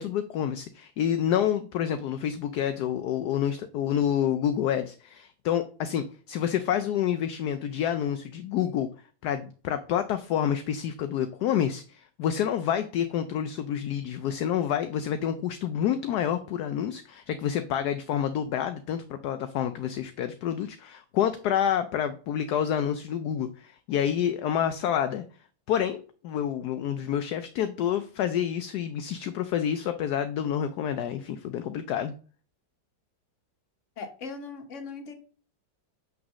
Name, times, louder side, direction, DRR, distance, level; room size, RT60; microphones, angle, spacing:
voice 1, 0.0-8.9 9.2-25.2 25.7-26.0 26.2-32.1, left 9 dB, 70° left, 9 dB, 1.1 m, -28 dB
voice 2, 34.0-35.1, left 4 dB, 45° left, 6 dB, 1.4 m, -39 dB
6.1 x 4.0 x 6.1 m, 0.40 s
omnidirectional pair, 2.0 m